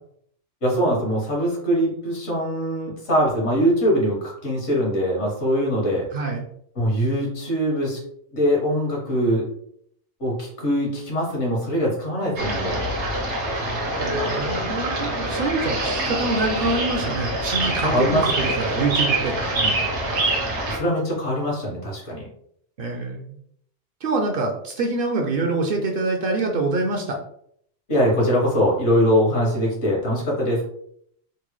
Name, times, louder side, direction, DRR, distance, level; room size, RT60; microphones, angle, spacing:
voice 1, 0.6-6.0 6.7-8.0 8.3-9.4 10.2-12.8 17.8-18.5 19.5-19.7 20.7-22.3 27.9-30.6, equal, 70° left, -2 dB, 1.5 m, -22 dB
voice 2, 6.1-6.4 14.0-19.5 22.8-23.3 24.0-27.2, right 3 dB, 60° right, 3 dB, 0.7 m, -25 dB
sound 1, 12.4-20.8, right 2 dB, 75° right, 1.1 m, -25 dB
3.9 x 2.1 x 3.0 m, 0.67 s
omnidirectional pair, 1.2 m